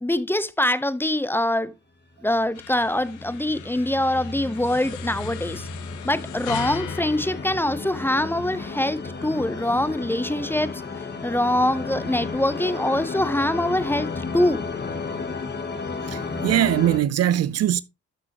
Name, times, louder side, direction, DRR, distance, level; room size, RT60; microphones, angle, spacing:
voice 1, 0.0-1.7 2.2-5.7 6.0-14.6, left 1 dB, 5° left, 0.8 m, -24 dB
sound 1, 2.5-8.3, left 12 dB, 80° left, 0.9 m, -39 dB
sound 2, 2.6-17.0, left 4 dB, 35° left, 2.0 m, -33 dB
voice 2, 16.0-17.8, right 11 dB, 55° right, 0.5 m, -21 dB
12.5 x 6.1 x 2.9 m
cardioid pair, 90°, 30 cm